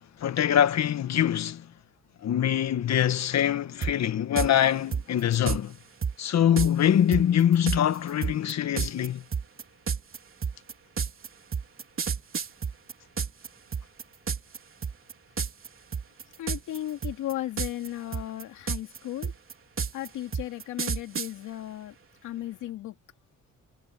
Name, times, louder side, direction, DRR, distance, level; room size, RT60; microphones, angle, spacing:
voice 1, 0.2-1.6 2.2-5.8 6.2-9.2, left 10 dB, 60° left, 1.6 m, -24 dB
sound 1, 3.8-3.9 4.4-4.5 4.9-5.6 6.0-6.1 6.6-6.7 7.1-13.5 13.7-14.6 14.8-15.1 15.4-15.7 15.9-16.8 17.0-17.9 18.1-21.3, right 6 dB, 45° right, 3.9 m, -29 dB
voice 2, 16.4-19.3 19.9-21.9 22.2-22.9, left 13 dB, 85° left, 2.6 m, -35 dB
cardioid pair, 90°, 30 cm